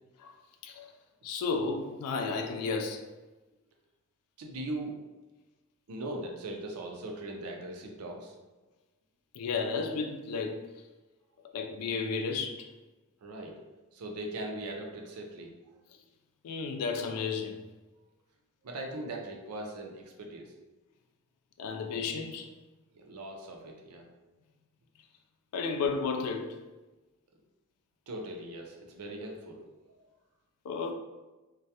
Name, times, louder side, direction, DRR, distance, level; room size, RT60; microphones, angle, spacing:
voice 1, 1.2-3.1 9.3-10.7 11.5-12.7 16.4-17.6 21.6-22.5 25.5-26.6 30.6-30.9, left 4 dB, 90° left, 0.3 m, -33 dB
voice 2, 4.4-5.0 5.9-8.4 13.2-13.6 13.9-15.5 18.6-20.5 22.9-24.1 28.1-29.8, right 1 dB, 85° right, 0.5 m, -40 dB
2.2 x 2.1 x 2.7 m
head